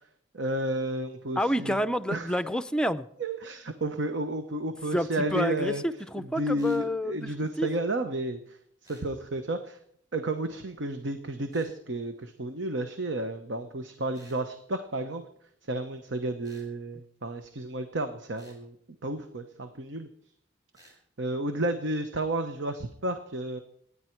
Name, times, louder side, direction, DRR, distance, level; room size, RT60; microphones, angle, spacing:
voice 1, 0.3-1.8 2.1-2.3 3.2-5.8 6.2-8.6 8.9-9.8 10.1-15.2 15.6-18.8 19.0-20.1 21.2-23.6, right 1 dB, 75° right, 7 dB, 1.0 m, -32 dB
voice 2, 1.4-3.1 4.9-7.7, equal, 5° left, 12 dB, 0.5 m, -29 dB
sound 1, 6.6-6.9 8.8-9.1 11.5-11.7 14.1-14.4 16.4-16.7 18.4-18.6 20.7-21.0, right 1 dB, 20° right, 4.7 m, -56 dB
26.0 x 9.9 x 4.6 m, 0.67 s
head